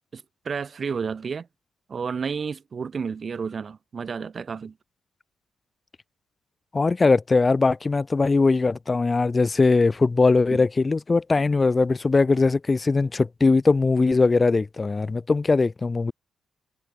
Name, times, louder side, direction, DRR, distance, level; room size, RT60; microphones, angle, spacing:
voice 1, 0.1-1.5 1.9-4.7 10.5-10.6, right 5 dB, 45° right, 7.7 m, -31 dB
voice 2, 6.7-16.1, left 3 dB, 30° left, 1.5 m, -20 dB
cardioid pair, 75°, 0 cm